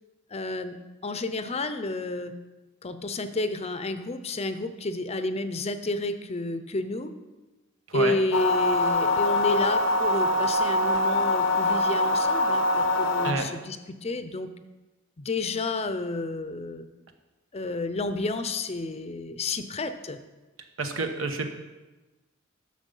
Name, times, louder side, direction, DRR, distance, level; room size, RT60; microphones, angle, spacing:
voice 1, 0.3-0.8 1.0-2.4 2.8-7.1 7.9-14.5 15.2-16.9 17.5-20.2, left 2 dB, 30° left, 10 dB, 0.6 m, -30 dB
sound 1, 8.3-13.3, left 2 dB, 90° left, 0.8 m, -23 dB
voice 2, 20.8-21.5, right 3 dB, 80° right, 5 dB, 1.1 m, -28 dB
10.5 x 6.7 x 5.4 m, 1.1 s
head